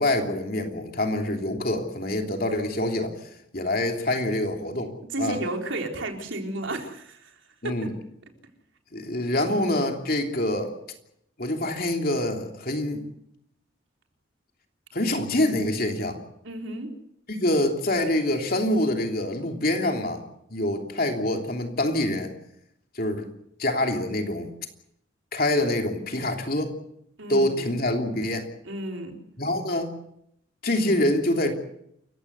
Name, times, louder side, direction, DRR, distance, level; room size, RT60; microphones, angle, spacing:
voice 1, 0.0-3.1 3.5-4.9 5.2-5.4 7.6-7.9 8.9-10.7 11.4-13.0 14.9-16.2 17.3-20.2 20.5-22.3 22.9-23.3 23.6-24.5 25.3-26.7 27.3-28.5 29.4-29.9 30.6-31.5, left 1 dB, 45° left, 4 dB, 3.1 m, -25 dB
voice 2, 5.1-7.8 16.4-16.9 27.2-27.7 28.6-29.2, right 2 dB, 80° right, 3 dB, 4.0 m, -32 dB
28.5 x 16.0 x 8.1 m, 0.76 s
head